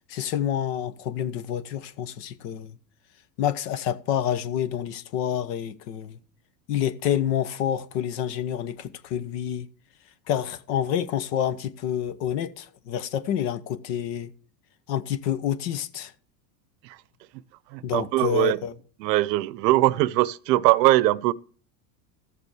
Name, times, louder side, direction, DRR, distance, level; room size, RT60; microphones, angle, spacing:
voice 1, 0.1-2.8 3.4-6.2 6.7-9.7 10.3-14.3 14.9-16.1 17.8-18.7, left 10 dB, 70° left, 1.2 m, -28 dB
voice 2, 17.7-18.6 19.0-21.3, right 17 dB, 75° right, 0.7 m, -21 dB
14.0 x 6.9 x 4.9 m
supercardioid pair, 110°, 50 cm